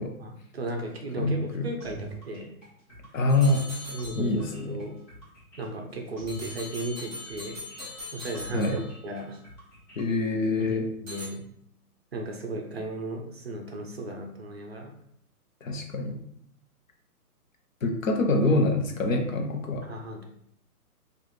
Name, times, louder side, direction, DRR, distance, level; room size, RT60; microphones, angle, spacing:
voice 1, 0.2-2.5 3.9-5.0 5.6-7.6 8.1-9.4 10.6-10.7 11.0-11.4 12.1-14.9 19.8-20.2, right 1 dB, 45° right, 2 dB, 0.5 m, -35 dB
voice 2, 1.2-1.7 3.1-3.7 4.1-4.8 8.5-8.8 10.0-10.9 15.6-16.2 17.8-19.8, left 2 dB, 60° left, 3 dB, 0.8 m, -25 dB
sound 1, 1.8-10.5, right 2 dB, 30° left, 1.4 m, -46 dB
sound 2, 3.3-4.6 6.3-9.2 11.1-11.3, left 2 dB, 20° right, 1.6 m, -41 dB
4.6 x 2.5 x 3.0 m, 0.70 s
hypercardioid pair, 170°, 46 cm